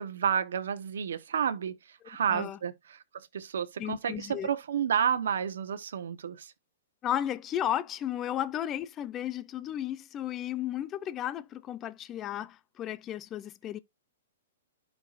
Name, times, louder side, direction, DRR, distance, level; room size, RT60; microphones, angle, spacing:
voice 1, 0.0-6.5, right 8 dB, 70° right, 1.0 m, -31 dB
voice 2, 3.8-4.5 7.0-13.8, left 11 dB, 15° left, 0.4 m, -34 dB
11.5 x 4.6 x 2.5 m
hypercardioid pair, 175°, 0 cm